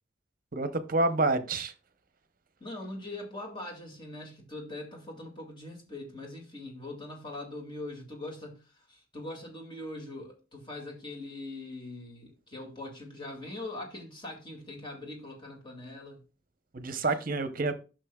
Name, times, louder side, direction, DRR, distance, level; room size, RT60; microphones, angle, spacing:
voice 1, 0.5-1.7 16.7-17.7, right 2 dB, 50° right, 0.8 m, -28 dB
voice 2, 2.6-16.2, left 2 dB, 25° left, 2.2 m, -42 dB
11.0 x 6.5 x 2.3 m
head